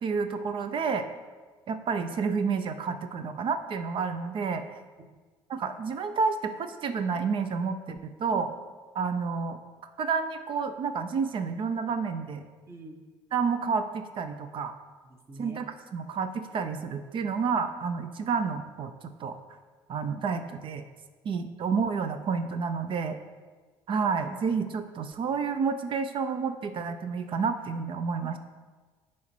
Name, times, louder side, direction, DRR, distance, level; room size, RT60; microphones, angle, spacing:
voice 1, 0.0-1.1 1.7-4.6 5.5-8.5 8.9-9.6 10.0-12.4 13.3-14.7 15.4-18.9 19.2-19.4 19.9-20.8 21.2-23.2 23.9-28.4, right 5 dB, 50° right, 9 dB, 0.5 m, -30 dB
voice 2, 12.7-13.0 15.3-15.6 28.2-28.4, right 2 dB, 25° right, 3 dB, 1.3 m, -44 dB
9.4 x 3.1 x 4.4 m, 1.4 s
supercardioid pair, 70°, 11 cm